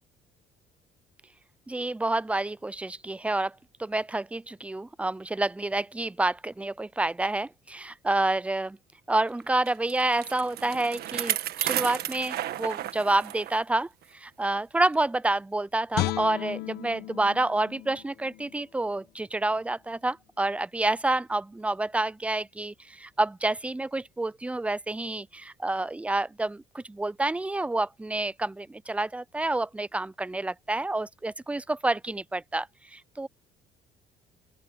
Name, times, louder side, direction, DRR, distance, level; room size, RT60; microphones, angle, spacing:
voice 1, 1.7-8.8 9.1-33.3, right 2 dB, 5° right, 0.5 m, -28 dB
Bicycle, 9.7-13.6 14.0-14.1 14.9-15.0, right 12 dB, 70° right, 1.7 m, -33 dB
Guitar, 15.9-19.1 19.5-19.7, left 16 dB, 75° left, 1.1 m, -35 dB
open air
cardioid pair, 110°, 17 cm